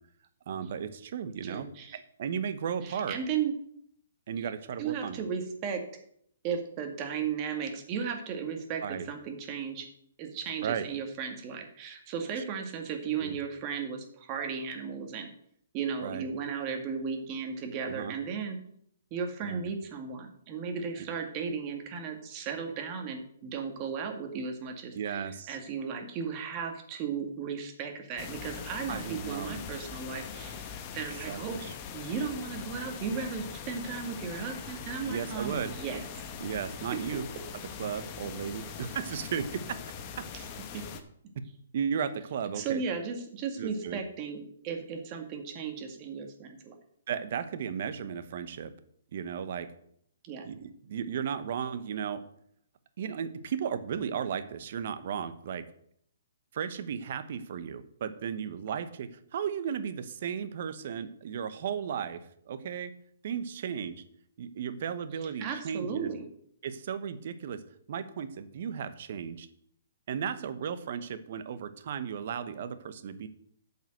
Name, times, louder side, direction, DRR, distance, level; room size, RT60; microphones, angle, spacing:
voice 1, 0.5-3.2 4.3-5.2 8.8-9.1 10.6-10.9 12.4-12.5 13.2-13.4 16.0-16.2 17.9-18.1 19.4-19.7 24.9-25.6 28.9-29.6 31.3-31.7 35.0-35.7 36.4-37.2 37.8-39.8 41.7-42.8 43.6-44.0 47.1-48.7 49.1-49.7 50.4-52.2 53.0-55.7 56.5-62.9 63.2-64.0 64.4-66.1 66.6-67.6 67.9-69.5 70.1-73.3, right 7 dB, 55° right, 11 dB, 1.0 m, -35 dB
voice 2, 1.5-2.0 2.8-3.5 4.8-5.8 6.4-9.9 10.2-15.3 15.7-18.6 19.1-36.1 40.3-40.4 40.7-40.8 42.6-46.7 50.2-50.5 65.4-66.2, right 6 dB, 30° right, 4 dB, 2.0 m, -35 dB
sound 1, 28.2-41.0, left 7 dB, 30° left, 1.2 m, -42 dB
9.3 x 5.6 x 7.7 m, 0.67 s
hypercardioid pair, 145°, 0 cm